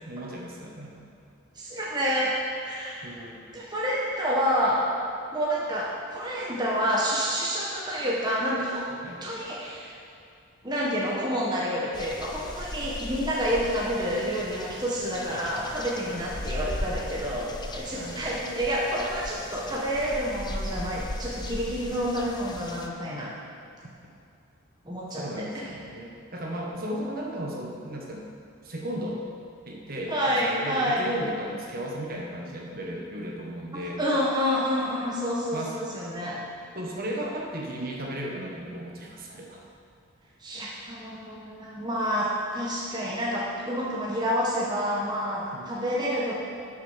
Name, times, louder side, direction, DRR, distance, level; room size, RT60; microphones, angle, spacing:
voice 1, 0.1-1.0 3.0-3.4 9.0-9.2 16.1-16.3 17.9-18.2 25.2-28.2 28.6-29.2 29.7-34.0 35.5-35.7 36.7-39.6 45.5-45.7, equal, 40° right, -2 dB, 1.3 m, -35 dB
voice 2, 1.5-2.3 2.6-3.1 3.5-4.8 5.3-8.9 9.2-9.9 10.6-23.4 24.8-25.7 30.1-31.0 34.0-36.4 40.4-46.3, equal, 20° right, -5 dB, 1.2 m, -28 dB
sound 1, 11.9-22.9, left 1 dB, 20° left, 0.5 m, -37 dB
11.0 x 6.3 x 5.7 m, 2.4 s
head